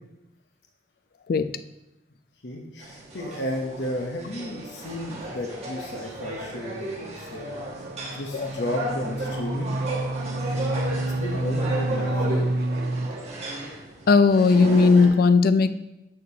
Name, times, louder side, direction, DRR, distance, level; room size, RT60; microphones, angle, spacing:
voice 1, 2.4-7.5 8.1-9.8 10.5-10.8 11.2-12.4, left 1 dB, 70° left, 1 dB, 0.9 m, -33 dB
sound 1, 2.8-15.1, right 1 dB, 40° right, 1.7 m, -34 dB
sound 2, 6.0-13.1, right 2 dB, 60° right, 0.5 m, -29 dB
voice 2, 14.1-15.7, left 4 dB, 55° left, 12 dB, 0.4 m, -17 dB
10.5 x 6.7 x 2.8 m, 0.93 s
head